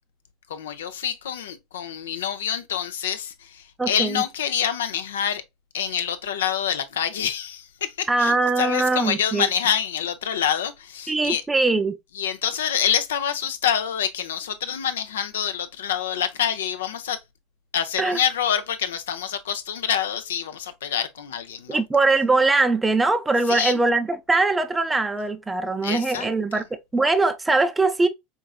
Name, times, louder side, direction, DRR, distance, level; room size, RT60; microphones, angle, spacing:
voice 1, 0.5-5.4 5.7-11.4 12.1-17.2 17.7-21.8 23.5-23.8 25.8-26.3, left 9 dB, 85° left, 0.5 m, -26 dB
voice 2, 3.8-4.2 8.1-9.4 11.1-12.0 18.0-18.2 21.7-26.6 26.9-28.1, right 3 dB, 10° right, 0.4 m, -21 dB
4.5 x 2.5 x 2.3 m
hypercardioid pair, 100°, 0 cm